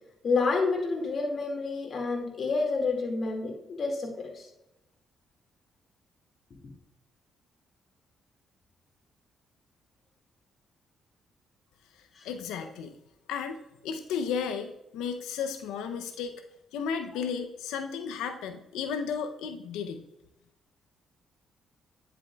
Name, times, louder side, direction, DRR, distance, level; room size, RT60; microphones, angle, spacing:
voice 1, 0.2-4.4 12.2-12.3, left 3 dB, 55° left, 3 dB, 2.0 m, -29 dB
voice 2, 12.2-12.9 13.3-13.6 13.8-16.3 16.7-20.0, left 6 dB, 85° left, 7 dB, 0.5 m, -33 dB
10.0 x 7.6 x 2.3 m, 0.89 s
supercardioid pair, 60°, 0 cm